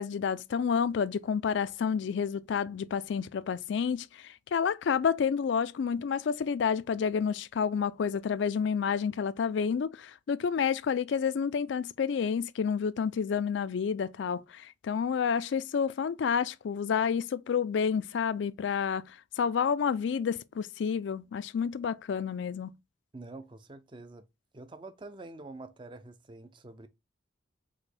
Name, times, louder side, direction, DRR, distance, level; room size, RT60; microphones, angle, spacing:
voice 1, 0.0-22.7, left 6 dB, 70° left, 0.3 m, -29 dB
voice 2, 23.1-24.2 24.5-26.9, right 2 dB, 25° right, 0.4 m, -46 dB
4.9 x 2.2 x 4.2 m
head